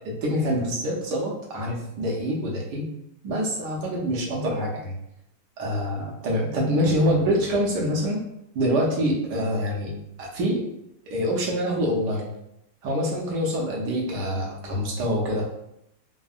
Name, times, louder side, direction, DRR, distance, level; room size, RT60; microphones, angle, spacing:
voice 1, 0.0-2.9 3.2-5.0 5.6-8.2 8.5-10.6 11.1-12.3 12.8-15.5, equal, 70° right, -2 dB, 1.3 m, -25 dB
3.5 x 2.0 x 2.3 m, 0.81 s
omnidirectional pair, 2.0 m